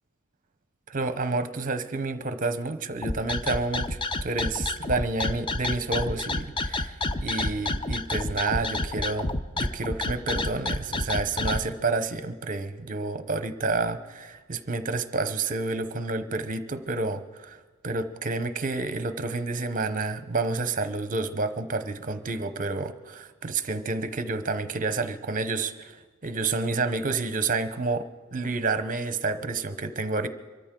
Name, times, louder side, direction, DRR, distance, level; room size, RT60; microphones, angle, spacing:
voice 1, 0.9-7.0 7.2-17.6 17.8-26.0 26.2-30.3, right 3 dB, 40° right, 11 dB, 0.9 m, -29 dB
sound 1, 3.0-11.6, left 2 dB, 25° left, 0.5 m, -29 dB
24.5 x 13.5 x 3.8 m, 1.4 s
head